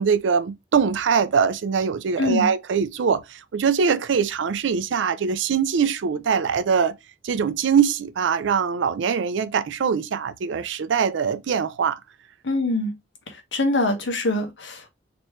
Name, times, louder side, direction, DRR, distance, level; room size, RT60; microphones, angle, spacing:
voice 1, 0.0-6.9 7.2-12.0, right 6 dB, 85° right, 0.4 m, -22 dB
voice 2, 2.2-2.5 12.4-12.9 13.3-14.9, left 2 dB, 80° left, 1.0 m, -24 dB
3.1 x 3.0 x 3.0 m
head